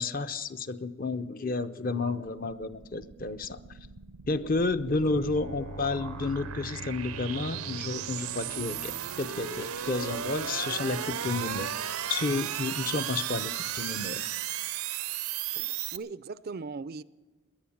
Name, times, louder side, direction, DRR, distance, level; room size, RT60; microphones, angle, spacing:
voice 1, 0.0-3.6 4.3-14.3, left 3 dB, 40° left, 10 dB, 0.6 m, -31 dB
sound 1, 2.2-16.0, right 10 dB, 85° right, 0.7 m, -36 dB
Bowed string instrument, 4.9-9.3, equal, 60° left, 5.0 m, -45 dB
voice 2, 15.6-17.0, right 4 dB, 45° right, 16 dB, 0.4 m, -39 dB
19.0 x 11.0 x 7.2 m, 1.2 s
head